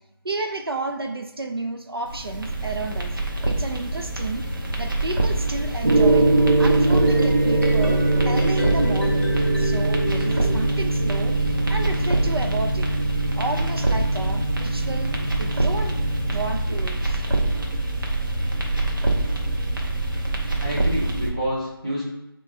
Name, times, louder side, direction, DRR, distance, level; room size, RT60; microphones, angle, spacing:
voice 1, 0.2-3.1 3.4-4.4 4.8-6.3 6.6-9.3 9.6-11.4 11.7-12.9 13.4-15.1 15.4-16.0 16.3-17.2, right 2 dB, 80° right, 4 dB, 0.6 m, -31 dB
sound 1, 2.0-21.3, right 2 dB, 60° right, 1.0 m, -25 dB
Gong, 5.8-16.5, right 2 dB, 40° right, 0.6 m, -23 dB
sound 2, 7.1-11.2, left 1 dB, 30° left, 0.8 m, -31 dB
voice 2, 20.6-22.1, equal, 15° right, -8 dB, 0.9 m, -28 dB
3.4 x 3.1 x 4.1 m, 0.93 s
figure-of-eight pair, 175°, 13 cm